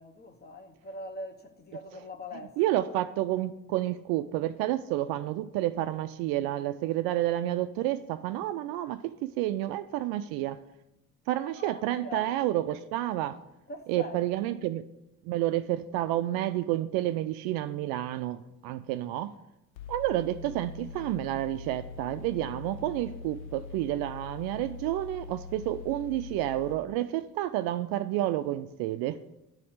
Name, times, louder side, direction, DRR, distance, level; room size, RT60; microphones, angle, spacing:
voice 1, 0.0-2.8 11.6-12.3 13.7-14.2, left 2 dB, 20° left, 1.0 m, -42 dB
voice 2, 2.6-10.6 11.3-13.4 13.9-14.8 15.2-19.3 19.9-29.2, right 14 dB, 50° right, 0.5 m, -30 dB
Mechanical fan, 19.8-26.7, left 5 dB, 60° left, 0.5 m, -43 dB
10.5 x 4.2 x 6.5 m
figure-of-eight pair, 55°, 47 cm